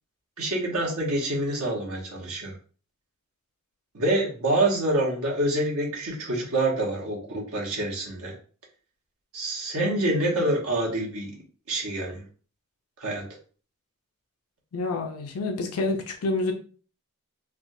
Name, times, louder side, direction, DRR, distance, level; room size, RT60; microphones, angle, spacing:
voice 1, 0.4-2.5 3.9-8.3 9.3-11.3 11.7-12.2 13.0-13.2, right 1 dB, 85° right, -2 dB, 1.0 m, -26 dB
voice 2, 14.7-16.5, left 2 dB, 80° left, 3 dB, 0.5 m, -28 dB
3.4 x 2.3 x 2.6 m, 0.40 s
head